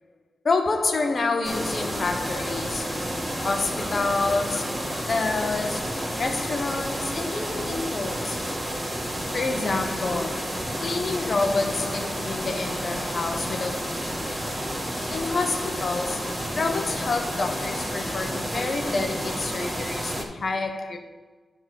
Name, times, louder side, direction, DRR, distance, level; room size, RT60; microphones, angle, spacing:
voice 1, 0.4-8.6 9.3-14.5 15.1-21.0, left 3 dB, 60° left, 1.1 m, -28 dB
sound 1, 1.4-20.2, equal, 15° right, 2.2 m, -30 dB
9.8 x 3.9 x 6.4 m
cardioid pair, 55°, 0 cm